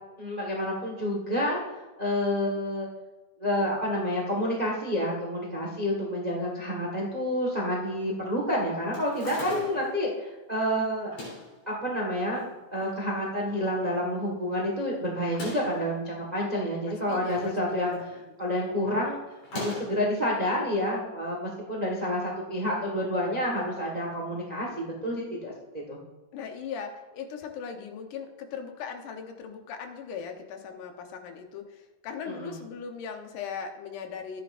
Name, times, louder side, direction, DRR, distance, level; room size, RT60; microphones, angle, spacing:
voice 1, 0.2-1.6 2.0-2.9 3.4-11.1 11.7-18.0 18.4-19.2 19.5-25.5 25.9-26.0 32.3-32.6, equal, 55° right, -2 dB, 0.4 m, -29 dB
sound 1, 8.9-10.0 11.0-11.6 12.3-13.0 13.4-13.5 13.6-13.7 15.2-15.8 16.9-17.6 17.9-18.3 19.4-20.1, left 2 dB, 70° left, 4.8 m, -39 dB
voice 2, 16.9-18.4 26.3-34.4, left 6 dB, 90° left, 5 dB, 2.6 m, -39 dB
13.5 x 9.8 x 2.5 m, 1.2 s
omnidirectional pair, 3.5 m